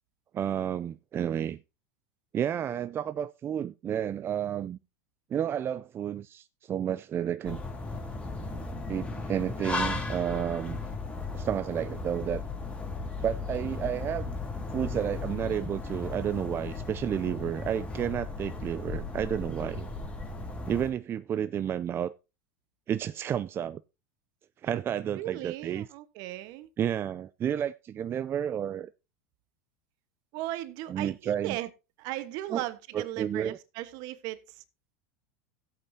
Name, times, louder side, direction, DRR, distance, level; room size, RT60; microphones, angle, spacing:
voice 1, 0.3-1.6 2.3-4.8 5.3-7.6 8.9-10.8 11.3-12.4 13.2-14.3 14.7-19.9 20.7-22.2 22.9-23.8 24.6-25.9 26.8-28.9 30.9-31.6 32.5-32.6 32.9-33.6, right 9 dB, 30° right, 0.5 m, -31 dB
sound 1, 7.4-20.9, left 3 dB, 15° left, 3.0 m, -36 dB
voice 2, 25.1-26.7 30.3-31.7 32.0-34.6, right 15 dB, 55° right, 1.2 m, -37 dB
16.0 x 8.3 x 2.8 m
hypercardioid pair, 100°, 8 cm